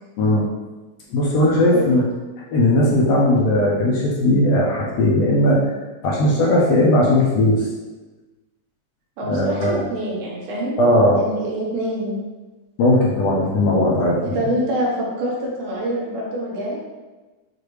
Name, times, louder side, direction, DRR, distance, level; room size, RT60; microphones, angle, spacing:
voice 1, 0.2-0.5 1.1-2.0 2.5-5.6 6.0-7.7 9.2-9.9 10.8-11.2 12.8-14.5, left 1 dB, 75° left, -4 dB, 1.6 m, -17 dB
voice 2, 9.2-10.8 11.1-12.2 14.3-16.8, right 1 dB, 85° right, -4 dB, 2.5 m, -25 dB
6.5 x 2.5 x 3.1 m, 1.2 s
omnidirectional pair, 3.4 m